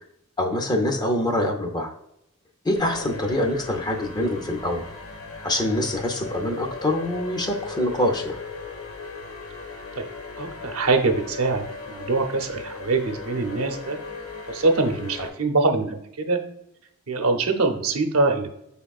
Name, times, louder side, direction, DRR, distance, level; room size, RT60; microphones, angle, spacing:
voice 1, 0.4-1.9 2.6-4.8 5.4-8.4, left 1 dB, 20° left, 3 dB, 0.5 m, -25 dB
sound 1, 2.8-15.3, left 4 dB, 65° left, 0.9 m, -38 dB
voice 2, 10.4-14.0 14.5-16.4 17.1-18.5, right 3 dB, 75° right, 4 dB, 0.7 m, -23 dB
5.9 x 3.5 x 2.3 m, 0.81 s
head